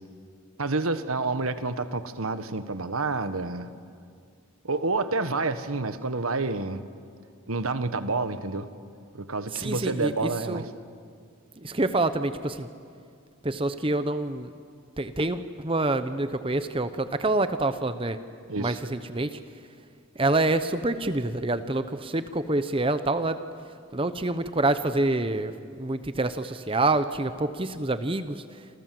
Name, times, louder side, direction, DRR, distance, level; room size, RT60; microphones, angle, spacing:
voice 1, 0.6-3.7 4.6-6.8 7.5-8.7 9.1-10.6 18.5-18.8, right 3 dB, 85° right, 11 dB, 1.4 m, -29 dB
voice 2, 9.5-10.6 11.6-12.7 13.4-14.5 15.0-18.2 18.6-19.4 20.2-23.4 23.9-25.5 25.8-28.4, right 2 dB, 25° right, 11 dB, 0.8 m, -27 dB
28.0 x 27.0 x 7.7 m, 2.3 s
head